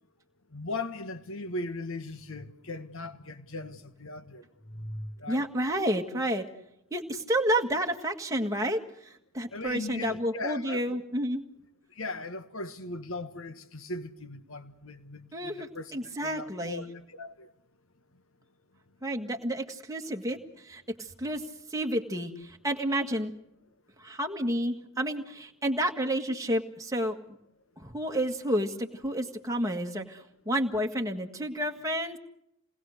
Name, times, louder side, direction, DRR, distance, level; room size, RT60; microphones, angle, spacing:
voice 1, 0.5-5.5 9.5-11.0 12.0-17.5, left 2 dB, 65° left, 1.6 m, -38 dB
voice 2, 5.3-6.5 6.9-11.4 15.3-16.9 19.0-21.4 21.7-23.3 24.0-27.2 27.8-32.2, right 1 dB, 15° right, 1.7 m, -30 dB
28.0 x 20.0 x 6.5 m
head